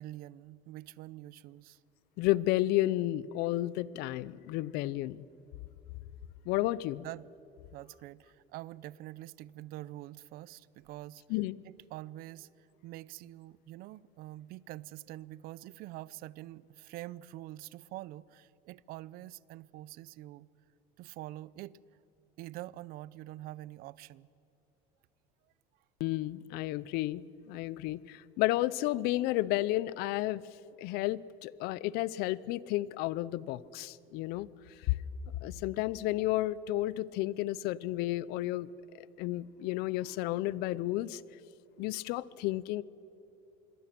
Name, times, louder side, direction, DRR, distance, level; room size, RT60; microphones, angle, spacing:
voice 1, 0.0-1.8 7.0-7.3 7.7-20.5 21.0-21.8 22.4-24.3, right 16 dB, 60° right, 0.6 m, -46 dB
voice 2, 2.2-5.3 6.5-7.1 11.3-11.6 26.0-30.4 30.8-34.5 34.8-35.0 35.4-41.2 41.8-42.8, left 16 dB, 70° left, 0.7 m, -32 dB
27.5 x 22.5 x 6.1 m
cardioid pair, 135°, 17 cm